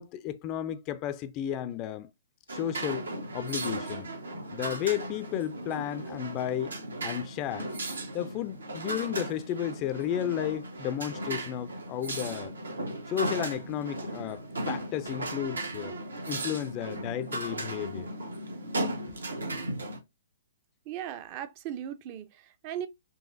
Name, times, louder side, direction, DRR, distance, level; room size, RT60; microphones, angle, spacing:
voice 1, 0.0-2.1 2.5-4.1 4.5-6.8 7.0-7.7 8.1-12.5 13.1-15.9 16.3-18.1, left 11 dB, 30° left, 0.3 m, -33 dB
sound 1, 2.5-20.0, right 2 dB, 80° right, 1.0 m, -36 dB
voice 2, 20.9-22.9, right 10 dB, 35° right, 0.5 m, -38 dB
3.9 x 2.6 x 2.5 m
figure-of-eight pair, 125°, 0 cm